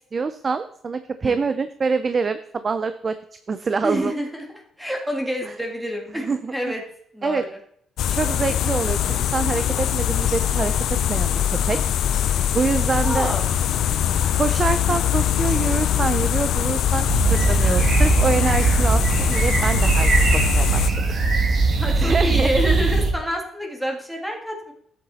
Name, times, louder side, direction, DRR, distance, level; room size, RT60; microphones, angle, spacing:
voice 1, 0.1-3.2 3.5-4.1 6.2-6.5 7.2-7.4 8.1-10.7 11.1-11.8 12.5-13.3 14.3-20.9 21.9-22.5, right 4 dB, 40° right, 11 dB, 0.5 m, -25 dB
voice 2, 3.8-6.8 7.1-7.6 13.0-13.5 21.8-24.7, equal, 5° right, 1 dB, 2.2 m, -27 dB
sound 1, 8.0-20.9, left 10 dB, 75° left, 0.6 m, -22 dB
sound 2, 17.1-23.1, right 3 dB, 55° right, 2.2 m, -20 dB
12.0 x 8.5 x 4.2 m, 0.68 s
cardioid pair, 90°, 0 cm